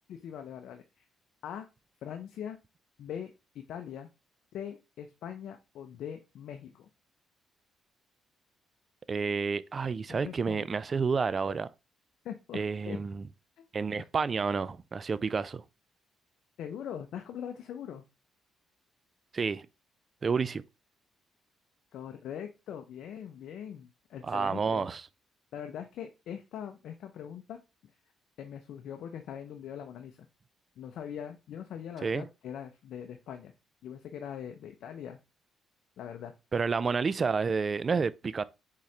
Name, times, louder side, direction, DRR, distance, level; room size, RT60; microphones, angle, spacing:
voice 1, 0.1-0.8 1.4-1.7 2.0-2.6 3.0-4.1 4.5-6.9 10.1-10.7 12.2-13.0 13.6-13.7 14.0-14.1 16.6-18.0 21.9-24.9 25.5-27.6 28.4-30.3 30.8-33.5 33.8-35.2 36.0-36.3, left 9 dB, 75° left, 0.5 m, -42 dB
voice 2, 9.1-11.7 12.5-13.2 13.7-15.6 19.3-19.7 20.2-20.6 24.2-25.0 32.0-32.3 36.5-38.4, right 5 dB, 40° right, 0.3 m, -30 dB
4.1 x 3.7 x 3.2 m
cardioid pair, 90°, 0 cm